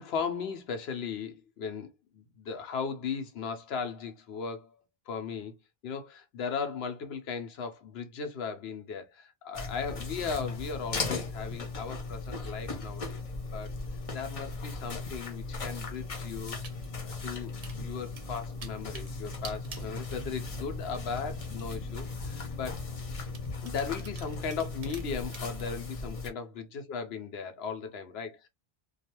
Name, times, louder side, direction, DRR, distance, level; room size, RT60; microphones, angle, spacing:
voice 1, 0.0-5.5 5.8-13.2 13.5-13.7 14.1-16.6 17.0-22.8 23.6-28.5, left 5 dB, 80° left, 0.9 m, -37 dB
sound 1, 9.5-26.3, left 3 dB, 40° left, 0.7 m, -37 dB
sound 2, 16.4-17.0 17.4-17.8 18.2-20.7 20.9-21.6 22.2-22.3 23.3-25.7, right 5 dB, 45° right, 0.6 m, -47 dB
2.4 x 2.3 x 2.8 m
omnidirectional pair, 1.0 m